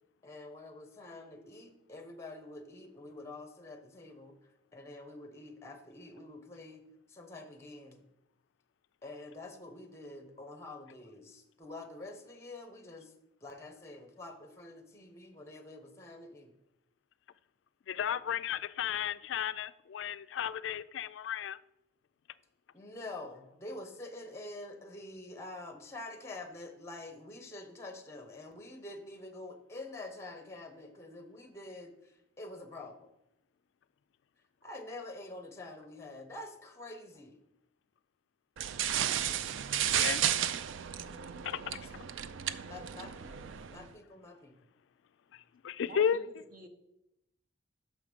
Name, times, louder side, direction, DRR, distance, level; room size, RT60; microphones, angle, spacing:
voice 1, 0.2-4.4 4.7-6.8 7.1-8.0 9.0-13.1 13.4-16.5 18.1-18.2 22.7-33.1 34.6-37.4 42.6-44.5, left 2 dB, 15° left, 0.7 m, -47 dB
voice 2, 17.9-21.6 39.8-40.2 41.4-41.9 45.3-46.2, left 8 dB, 70° left, 0.3 m, -34 dB
sound 1, 38.6-43.8, right 10 dB, 75° right, 0.4 m, -33 dB
voice 3, 45.8-46.7, right 2 dB, 45° right, 0.9 m, -48 dB
6.5 x 4.9 x 5.1 m
head